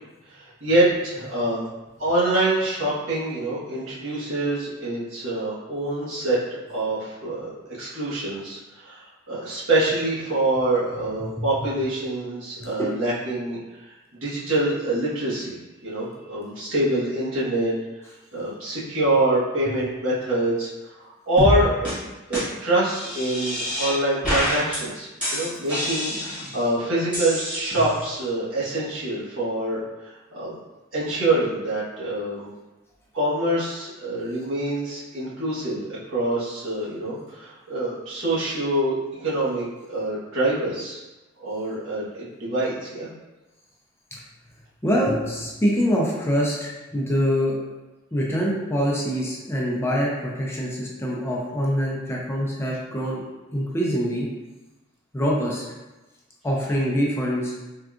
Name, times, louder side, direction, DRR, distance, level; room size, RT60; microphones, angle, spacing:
voice 1, 0.3-1.6 2.0-13.6 13.9-14.0 14.2-15.6 15.8-17.7 18.3-20.7 21.0-22.0 22.3-30.5 30.9-32.5 33.1-41.0 41.4-43.1, right 1 dB, 70° right, -8 dB, 1.1 m, -25 dB
sound 1, 21.4-21.6 21.8-21.9 22.3-22.4 22.9-23.9 24.2-24.8 25.2-26.6 27.1-28.1, equal, 5° right, 0.9 m, -27 dB
voice 2, 44.8-47.6 48.1-53.2 53.5-54.3 55.1-55.6 56.4-57.5, equal, 10° left, -4 dB, 0.4 m, -24 dB
3.6 x 2.3 x 2.4 m, 1.1 s
head